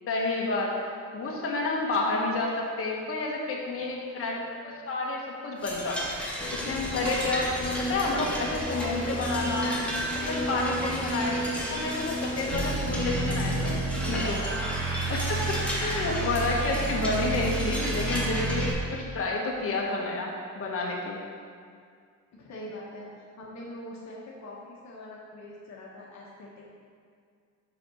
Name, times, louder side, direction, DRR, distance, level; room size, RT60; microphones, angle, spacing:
voice 1, 0.1-4.4 4.6-6.0 6.5-9.8 10.1-14.4 15.1-21.2, left 3 dB, 45° left, -2 dB, 1.4 m, -30 dB
voice 2, 4.1-4.7 15.3-15.5 22.3-23.1 23.4-26.8, left 1 dB, 65° left, -4 dB, 1.3 m, -43 dB
sound 1, 5.6-18.7, equal, 5° left, 1.7 m, -34 dB
sound 2, 6.4-13.8, equal, 25° left, 0.6 m, -34 dB
sound 3, 12.5-18.7, right 3 dB, 70° right, 1.9 m, -30 dB
5.9 x 4.9 x 6.2 m, 2.2 s
cardioid pair, 90°, 30 cm